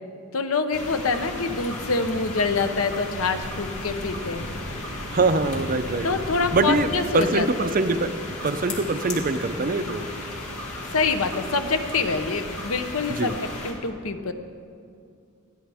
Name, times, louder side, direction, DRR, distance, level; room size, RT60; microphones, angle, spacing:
voice 1, 0.3-4.4 6.0-7.7 10.9-13.4 13.6-14.3, left 4 dB, 70° left, 8 dB, 0.9 m, -26 dB
sound 1, 0.7-13.7, left 1 dB, 85° left, 2.3 m, -34 dB
voice 2, 5.1-6.1 6.5-6.9 7.1-8.1 8.4-10.1 13.2-13.3, right 3 dB, 40° right, 10 dB, 0.6 m, -23 dB
20.0 x 13.5 x 3.5 m, 2.4 s
head